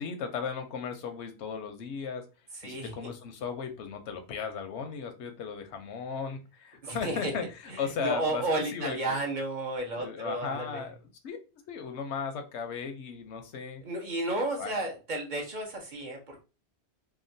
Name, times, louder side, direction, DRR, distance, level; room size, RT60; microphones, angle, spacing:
voice 1, 0.0-2.2 2.6-9.2 10.0-11.0 11.2-11.4 11.7-13.8 14.5-14.8, left 6 dB, 85° left, 6 dB, 0.9 m, -36 dB
voice 2, 2.6-3.1 6.8-7.3 7.7-10.8 13.8-16.4, right 2 dB, 50° right, 1 dB, 0.7 m, -33 dB
2.8 x 2.2 x 2.6 m, 0.32 s
omnidirectional pair, 1.1 m